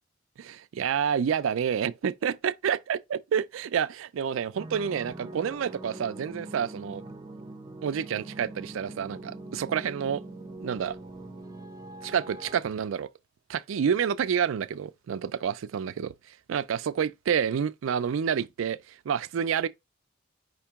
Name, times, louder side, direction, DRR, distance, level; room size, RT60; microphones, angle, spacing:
voice 1, 0.4-7.0 7.8-10.2 10.6-11.0 12.0-13.1 13.5-16.1 16.5-19.7, right 7 dB, 70° right, 0.4 m, -29 dB
sound 1, 4.5-12.6, right 2 dB, 20° right, 0.6 m, -42 dB
5.2 x 2.8 x 3.4 m
head